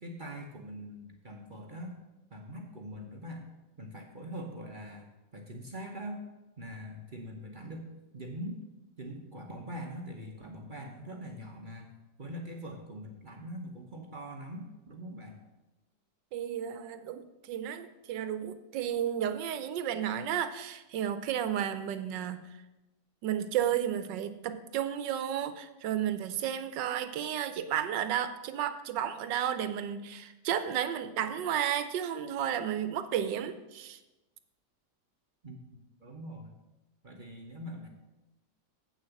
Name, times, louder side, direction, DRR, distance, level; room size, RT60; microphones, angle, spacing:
voice 1, 0.0-1.9 2.3-3.5 3.8-5.1 5.3-6.2 6.6-7.9 8.1-8.6 9.0-11.9 12.2-15.4 35.4-36.6 37.0-37.9, equal, 35° right, 2 dB, 0.8 m, -43 dB
voice 2, 16.3-22.4 23.2-34.0, right 10 dB, 90° right, 11 dB, 1.4 m, -32 dB
8.0 x 6.5 x 7.1 m, 1.0 s
omnidirectional pair, 1.9 m